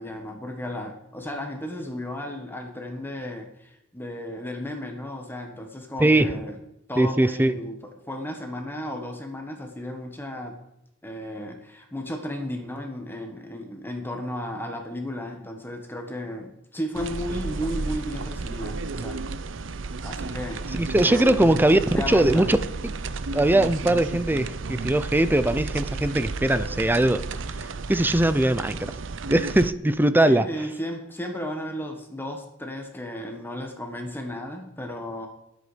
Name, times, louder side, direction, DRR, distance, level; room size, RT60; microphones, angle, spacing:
voice 1, 0.0-6.6 6.9-10.6 11.0-19.2 20.0-21.5 21.8-22.5 30.2-35.3, left 1 dB, 10° left, 3 dB, 1.6 m, -34 dB
voice 2, 7.0-7.5 20.7-21.8 22.1-22.6 23.3-27.2 27.6-28.9 29.3-30.5, right 1 dB, 10° right, 13 dB, 0.6 m, -20 dB
sound 1, 16.9-29.7, right 3 dB, 80° right, 0.7 m, -32 dB
20.0 x 8.2 x 5.1 m, 0.85 s
head